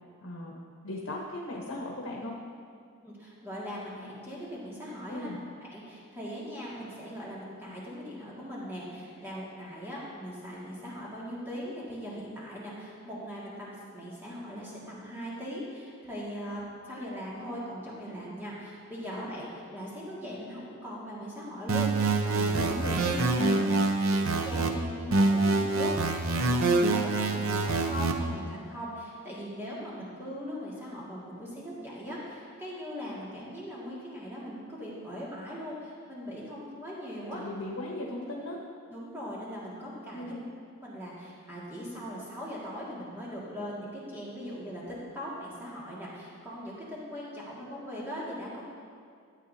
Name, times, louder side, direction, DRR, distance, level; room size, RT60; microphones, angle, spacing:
voice 1, 0.2-2.4 5.1-5.4 22.5-23.8 37.3-38.6 40.1-40.4, left 1 dB, 80° left, -2 dB, 1.0 m, -37 dB
voice 2, 3.0-5.3 5.6-22.7 24.1-37.4 38.9-40.4 40.8-48.7, equal, 10° right, -7 dB, 1.9 m, -40 dB
sound 1, 21.7-24.7 25.1-28.1, right 3 dB, 70° right, 0.6 m, -26 dB
13.0 x 8.4 x 2.7 m, 2.2 s
head